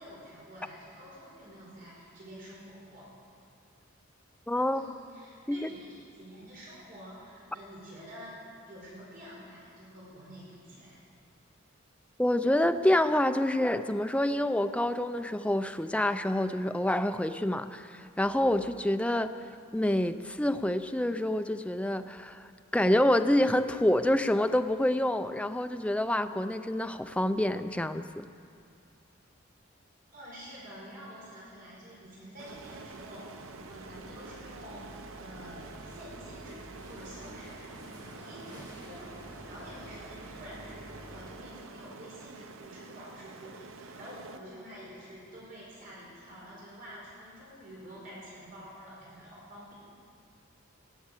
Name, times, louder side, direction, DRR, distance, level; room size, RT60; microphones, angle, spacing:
voice 1, 0.0-3.1 4.7-8.4 8.7-11.0 30.1-49.7, equal, 45° right, -6 dB, 4.7 m, -48 dB
voice 2, 4.5-4.9 5.5-5.7 12.2-19.3 19.7-28.3, left 1 dB, 5° left, 9 dB, 0.4 m, -27 dB
sound 1, 32.4-44.4, right 4 dB, 75° right, 0.7 m, -48 dB
sound 2, 32.5-41.3, equal, 20° right, 2.0 m, -50 dB
18.0 x 8.6 x 8.2 m, 2.3 s
head